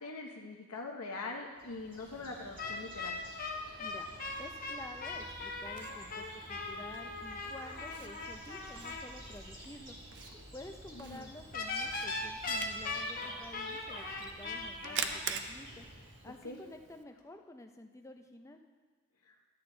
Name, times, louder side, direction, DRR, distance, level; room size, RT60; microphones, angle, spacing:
voice 1, 0.0-3.2 10.9-11.3 16.4-16.6 19.2-19.4, left 3 dB, 85° left, 1 dB, 0.8 m, -43 dB
sound 1, 1.6-16.4, right 1 dB, 20° right, 1.6 m, -51 dB
sound 2, 2.6-9.1 11.5-15.2, left 3 dB, 40° left, 0.9 m, -39 dB
voice 2, 4.4-10.0 10.5-15.9 16.2-18.6, left 1 dB, 15° left, 5 dB, 0.5 m, -50 dB
Camera, 5.0-17.0, right 7 dB, 50° right, 0.5 m, -46 dB
11.5 x 8.7 x 3.8 m, 1.5 s
head